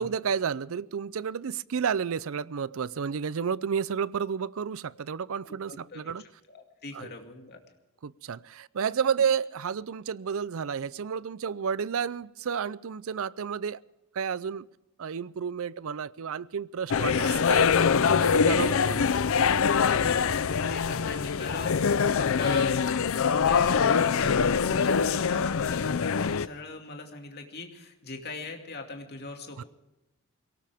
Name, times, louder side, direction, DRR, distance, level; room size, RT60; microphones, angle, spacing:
voice 1, 0.0-6.2 6.9-7.1 8.0-13.8 14.1-14.7 15.0-17.7 18.2-19.1 29.6-29.7, right 7 dB, 70° right, 0.5 m, -31 dB
voice 2, 5.5-6.0 6.5-7.6 18.5-22.8 23.3-29.6, left 2 dB, 50° left, 2.4 m, -40 dB
sound 1, 16.9-26.5, left 6 dB, 65° left, 0.5 m, -24 dB
22.5 x 18.0 x 3.5 m
head